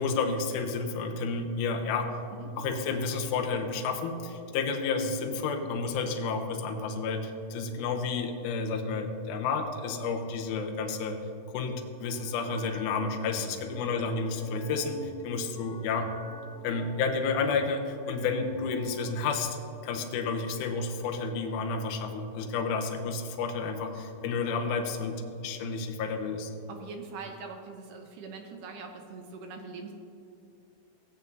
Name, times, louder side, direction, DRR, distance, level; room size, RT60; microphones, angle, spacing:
voice 1, 0.0-2.1 2.6-11.2 11.5-16.1 16.6-19.6 19.8-25.2 25.4-26.5, left 4 dB, 75° left, 3 dB, 2.1 m, -31 dB
sound 1, 11.7-19.1, left 1 dB, 45° left, 2.6 m, -49 dB
voice 2, 13.4-13.7 26.7-29.9, right 4 dB, 75° right, 3 dB, 2.2 m, -43 dB
15.5 x 8.9 x 2.7 m, 2.7 s
omnidirectional pair, 4.0 m